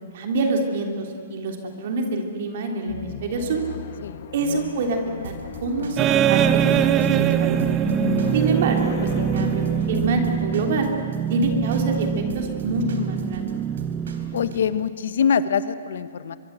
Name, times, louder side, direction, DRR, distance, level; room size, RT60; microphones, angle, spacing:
voice 1, 0.1-3.6 4.3-5.3 5.6-7.6 8.3-10.9 11.3-13.5, right 3 dB, 55° right, 3 dB, 3.3 m, -26 dB
sound 1, 2.9-10.5, left 9 dB, 50° left, 1.2 m, -34 dB
Drum kit / Drum, 5.2-8.8 9.1-14.6, right 5 dB, 80° right, 3.9 m, -40 dB
sound 2, 6.0-14.9, right 9 dB, 20° right, 0.7 m, -23 dB
voice 2, 14.3-16.4, left 7 dB, 70° left, 13 dB, 1.3 m, -24 dB
23.5 x 23.0 x 8.2 m, 2.3 s
hypercardioid pair, 155°, 0 cm